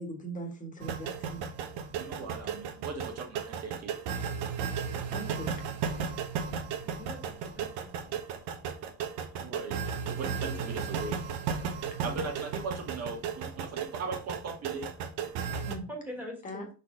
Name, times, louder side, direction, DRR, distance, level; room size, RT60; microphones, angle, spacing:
voice 1, 0.0-1.5 5.1-5.5 15.6-15.8 16.4-16.7, right 1 dB, 20° left, 2 dB, 1.5 m, -40 dB
sound 1, 0.8-15.8, right 7 dB, 80° right, 1.2 m, -35 dB
voice 2, 2.0-3.9 9.4-11.2 12.0-14.9, right 4 dB, 40° right, 2 dB, 1.7 m, -38 dB
voice 3, 6.8-8.1 15.9-16.7, equal, 5° right, -1 dB, 1.6 m, -43 dB
6.0 x 4.2 x 3.8 m, 0.35 s
cardioid pair, 165°, 39 cm